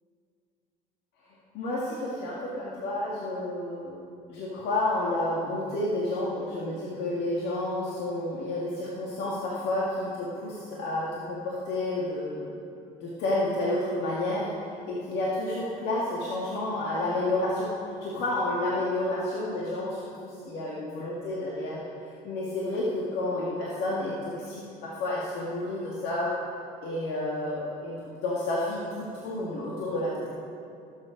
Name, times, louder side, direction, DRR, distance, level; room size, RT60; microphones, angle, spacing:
voice 1, 1.5-4.0 4.3-12.5 13.0-14.5 14.8-17.7 18.0-21.8 22.2-26.3 26.8-30.3, left 1 dB, 75° left, -5 dB, 2.0 m, -30 dB
17.0 x 7.6 x 5.2 m, 2.5 s
supercardioid pair, 80°, 17 cm